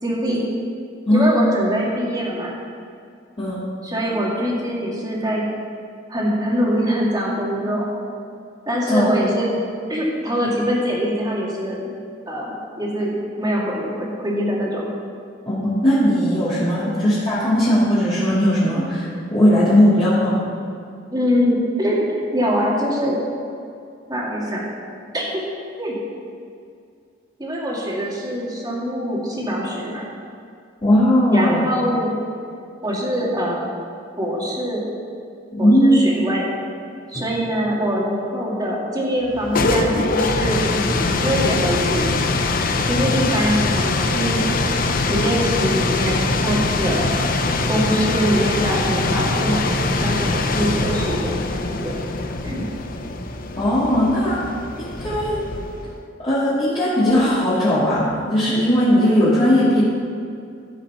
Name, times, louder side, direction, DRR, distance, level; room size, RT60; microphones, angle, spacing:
voice 1, 0.0-0.4 1.1-2.5 3.8-5.4 6.1-7.9 8.7-9.5 9.9-11.9 12.3-14.9 21.1-23.2 24.1-24.6 25.1-25.2 25.8-26.0 27.4-30.0 31.3-32.1 32.8-33.7 34.2-34.8 35.6-36.5 37.1-42.1 42.9-44.4 45.0-47.1 47.7-51.4 51.7-52.0 52.4-52.7, equal, 20° right, -4 dB, 2.2 m, -23 dB
voice 2, 3.4-3.7 8.9-9.1 15.5-20.4 30.8-31.6 35.5-36.0 53.6-54.4 54.8-55.4 56.2-59.8, equal, 30° left, -12 dB, 2.5 m, -18 dB
sound 1, 39.3-56.0, left 3 dB, 50° left, 0.7 m, -22 dB
14.5 x 5.9 x 5.7 m, 2.4 s
head